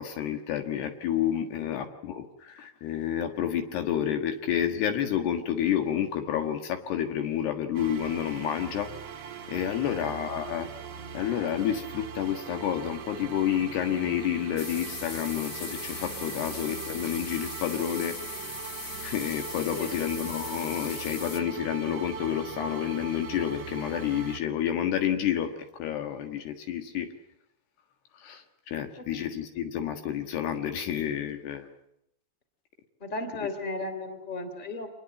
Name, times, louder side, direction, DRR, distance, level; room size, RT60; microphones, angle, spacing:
voice 1, 0.0-8.9 9.5-10.7 11.1-18.2 19.0-25.5 25.8-27.1 28.1-31.7, left 10 dB, 70° left, 6 dB, 3.5 m, -29 dB
sound 1, 7.7-24.4, right 7 dB, 50° right, 2.2 m, -41 dB
sound 2, 14.6-21.4, left 3 dB, 90° left, 0.6 m, -39 dB
voice 2, 33.0-34.9, left 2 dB, 15° left, 7 dB, 2.6 m, -35 dB
26.5 x 21.0 x 7.7 m, 0.79 s
omnidirectional pair, 5.3 m